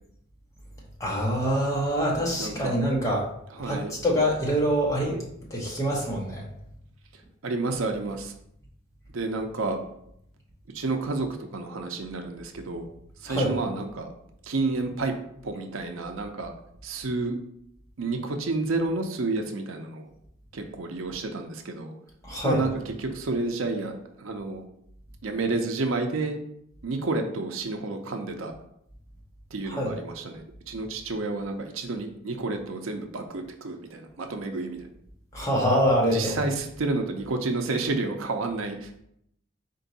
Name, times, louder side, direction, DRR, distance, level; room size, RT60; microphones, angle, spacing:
voice 1, 1.0-3.3 3.6-5.2 5.5-6.4 13.3-13.5 22.2-22.6 29.6-29.9 35.3-36.4, equal, 15° left, -3 dB, 1.0 m, -25 dB
voice 2, 2.4-2.8 3.6-3.9 7.4-8.3 9.1-9.8 10.7-12.9 13.2-14.1 14.4-15.1 15.4-16.5 16.8-17.4 18.0-20.1 20.5-21.9 22.4-22.7 23.0-23.9 24.2-24.6 25.2-26.4 26.8-28.5 29.5-34.9 36.1-39.0, right 3 dB, 80° right, 5 dB, 0.6 m, -30 dB
4.5 x 2.6 x 4.0 m, 0.73 s
head